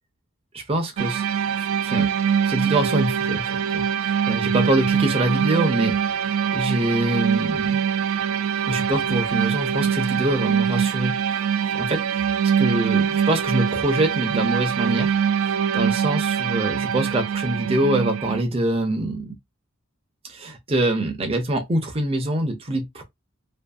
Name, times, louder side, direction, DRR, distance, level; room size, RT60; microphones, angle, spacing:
voice 1, 0.5-1.3 1.8-2.1 2.4-7.8 8.7-15.2 15.5-19.4 20.2-23.0, right 1 dB, 25° right, 0.5 m, -25 dB
sound 1, 1.0-18.4, right 7 dB, 80° right, 0.3 m, -23 dB
2.6 x 2.6 x 2.3 m
head